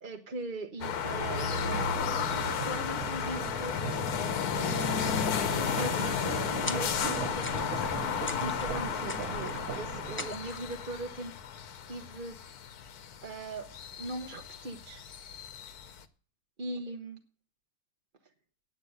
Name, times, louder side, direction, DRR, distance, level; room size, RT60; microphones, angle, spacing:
voice 1, 0.0-3.7 4.5-5.2 5.6-7.9 8.3-11.3 11.9-12.6 13.2-13.7 14.0-15.0 16.6-17.2, right 2 dB, 40° right, 4 dB, 1.1 m, -40 dB
sound 1, 0.8-16.0, left 7 dB, 85° left, 1.4 m, -33 dB
sound 2, 1.2-10.3, right 8 dB, 70° right, 1.2 m, -39 dB
sound 3, 6.7-7.1 7.4-7.9 8.3-8.7 9.1-9.8 10.2-10.8, left 2 dB, 15° left, 0.4 m, -41 dB
9.6 x 8.2 x 7.9 m, 0.41 s
omnidirectional pair, 1.6 m